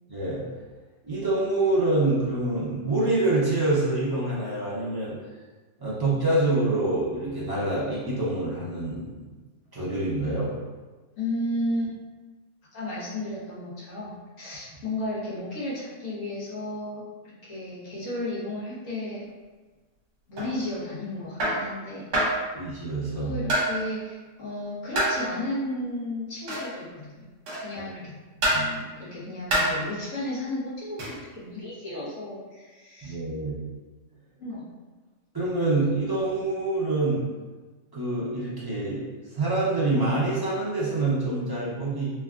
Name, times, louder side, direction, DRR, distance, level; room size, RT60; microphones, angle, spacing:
voice 1, 0.1-0.4 1.0-5.1 5.8-9.3 9.7-10.5 22.5-23.3 33.0-33.5 35.3-37.2 37.9-39.0 39.3-42.1, right 2 dB, 35° right, -8 dB, 0.3 m, -26 dB
voice 2, 11.2-11.9 12.7-19.2 20.3-22.1 23.2-27.2 27.6-28.2 28.5-33.1 34.4-34.6, left 1 dB, 65° left, -8 dB, 1.3 m, -33 dB
sound 1, 20.4-20.6 21.4-21.7 22.1-22.4 23.5-23.8 25.0-25.2 26.5-26.7 27.5-27.8 28.4-28.7 29.5-29.8 31.0-31.2, right 1 dB, 60° right, 1.1 m, -25 dB
3.4 x 2.3 x 2.3 m, 1.3 s
omnidirectional pair, 1.5 m